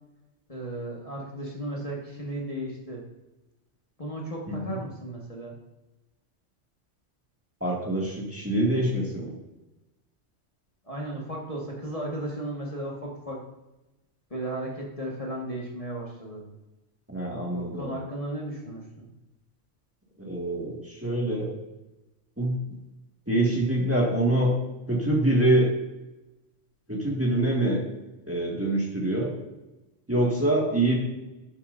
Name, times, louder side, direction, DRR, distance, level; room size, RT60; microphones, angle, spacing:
voice 1, 0.5-3.0 4.0-5.5 10.8-13.4 14.3-16.4 17.5-19.1, right 1 dB, 30° left, -3 dB, 1.5 m, -35 dB
voice 2, 7.6-9.3 17.1-17.9 20.2-21.5 22.4-22.6 23.3-24.5 24.9-25.7 26.9-27.8 28.3-29.3 30.1-31.0, right 1 dB, 10° right, -3 dB, 1.8 m, -25 dB
12.0 x 7.2 x 2.6 m, 1.0 s
omnidirectional pair, 1.3 m